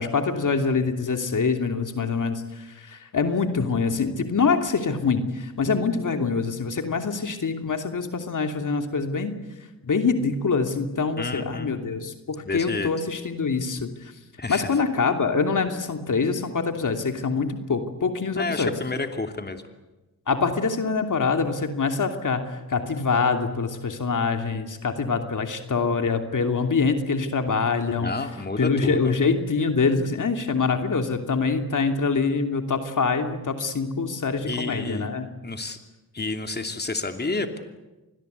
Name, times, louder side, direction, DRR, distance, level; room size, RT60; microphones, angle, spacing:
voice 1, 0.0-9.3 9.8-14.1 14.5-18.7 20.3-28.1 28.6-35.3, left 4 dB, 55° left, 6 dB, 2.9 m, -25 dB
voice 2, 11.2-11.7 12.4-12.9 14.4-14.7 18.3-19.6 28.0-29.1 34.5-35.1 35.4-35.8 36.1-37.6, left 3 dB, 25° left, 6 dB, 2.9 m, -30 dB
27.0 x 20.5 x 8.3 m, 1.1 s
supercardioid pair, 50°, 37 cm